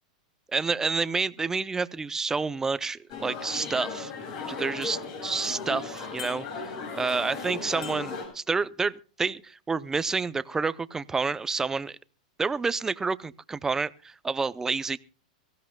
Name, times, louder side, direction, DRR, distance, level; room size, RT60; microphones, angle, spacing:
voice 1, 0.5-4.1 4.5-5.0 5.2-6.7 7.0-12.0 12.4-15.0, right 4 dB, 10° right, 0.6 m, -29 dB
sound 1, 3.1-8.2, left 4 dB, 55° left, 7.8 m, -36 dB
24.0 x 16.0 x 2.2 m
hypercardioid pair, 130°, 4 cm